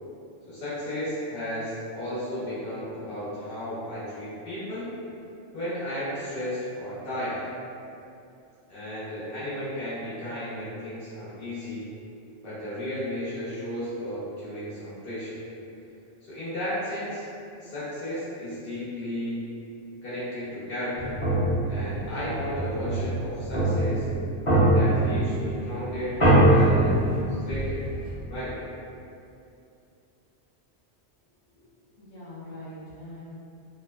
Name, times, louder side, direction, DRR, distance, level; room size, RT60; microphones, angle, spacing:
voice 1, 0.5-4.9 5.5-7.4 8.7-11.9 12.4-15.4 16.2-17.2 17.6-19.4 20.0-21.2 21.7-24.1 24.7-27.9 28.3-28.6, equal, 55° left, -11 dB, 1.1 m, -34 dB
sound 1, 21.0-28.1, right 1 dB, 30° left, 0.7 m, -23 dB
voice 2, 32.0-33.2, left 1 dB, 75° left, -11 dB, 0.9 m, -42 dB
2.9 x 2.1 x 2.2 m, 2.6 s
omnidirectional pair, 1.2 m